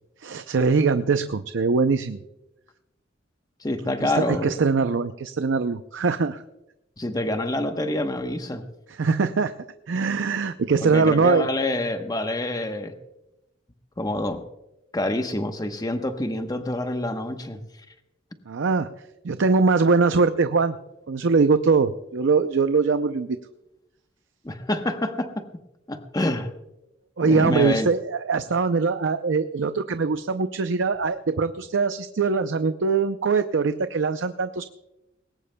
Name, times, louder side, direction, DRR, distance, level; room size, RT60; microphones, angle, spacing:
voice 1, 0.2-2.2 4.0-6.4 8.9-9.5 9.9-11.5 18.5-18.9 19.2-20.8 21.1-23.4 27.2-34.7, right 4 dB, 75° right, 10 dB, 0.5 m, -22 dB
voice 2, 3.6-4.5 7.0-8.6 10.8-13.0 14.0-14.4 14.9-17.6 24.4-25.5 25.9-26.5 27.2-27.9, left 1 dB, 20° left, 7 dB, 1.0 m, -27 dB
20.0 x 18.0 x 2.2 m, 0.91 s
head